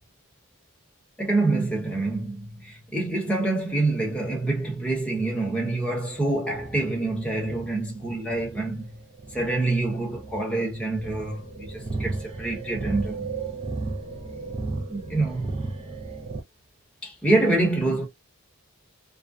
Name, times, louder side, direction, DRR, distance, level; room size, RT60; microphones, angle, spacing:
voice 1, 1.2-9.0 9.3-13.3 14.9-15.5 17.0-18.1, right 2 dB, 5° left, 0.9 m, -26 dB
sound 1, 6.0-16.4, right 3 dB, 30° right, 0.6 m, -35 dB
2.4 x 2.1 x 2.4 m
head